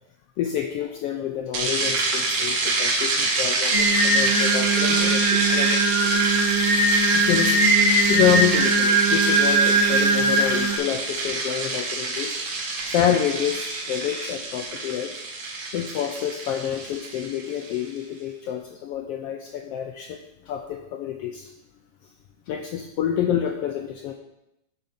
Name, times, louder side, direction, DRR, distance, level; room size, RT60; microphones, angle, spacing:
voice 1, 0.4-6.3 7.1-7.6 8.1-12.3 12.9-15.2 15.7-20.2 20.4-21.5 22.5-24.1, left 10 dB, 85° left, 4 dB, 1.3 m, -28 dB
sound 1, 1.5-17.8, right 3 dB, 75° right, 3.1 m, -26 dB
Singing, 3.7-10.7, right 2 dB, 60° right, 0.4 m, -20 dB
9.0 x 7.0 x 5.7 m, 0.87 s
omnidirectional pair, 3.5 m